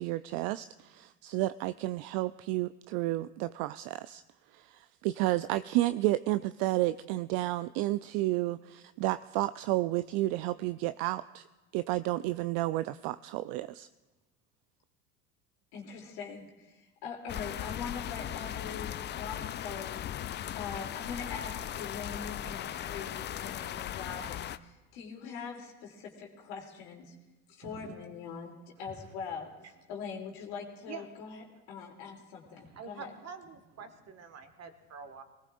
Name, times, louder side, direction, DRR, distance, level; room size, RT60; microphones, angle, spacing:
voice 1, 0.0-4.2 4.5-11.4 11.7-13.9, right 17 dB, 55° right, 13 dB, 0.5 m, -31 dB
voice 2, 15.7-20.1 20.5-27.1 27.5-29.5 29.9-33.1, left 5 dB, 65° left, -1 dB, 3.0 m, -42 dB
sound 1, 17.3-24.6, left 11 dB, 25° left, 0.4 m, -38 dB
voice 3, 27.6-28.0 28.9-29.1 29.6-29.7 30.9-31.1 32.0-32.1 32.5-35.2, right 5 dB, 35° right, 7 dB, 1.7 m, -47 dB
24.5 x 18.5 x 2.5 m, 1.1 s
hypercardioid pair, 75°, 45 cm